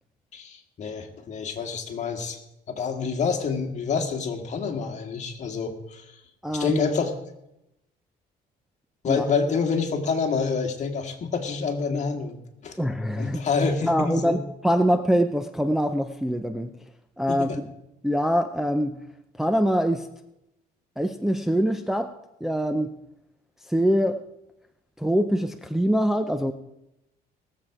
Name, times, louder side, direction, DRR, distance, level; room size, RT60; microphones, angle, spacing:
voice 1, 0.3-2.4 2.7-6.1 6.5-7.1 9.0-12.4 12.6-12.8 13.2-14.4 17.3-17.6, left 5 dB, 45° left, 5 dB, 1.9 m, -27 dB
voice 2, 6.4-6.8 9.1-9.2 12.8-13.4 13.8-16.8 17.2-17.5 18.0-19.0 19.4-20.1 21.0-22.1 22.4-22.9 23.7-24.2 25.0-26.5, equal, ahead, 6 dB, 0.6 m, -24 dB
19.0 x 7.5 x 4.8 m, 0.87 s
cardioid pair, 110°, 17 cm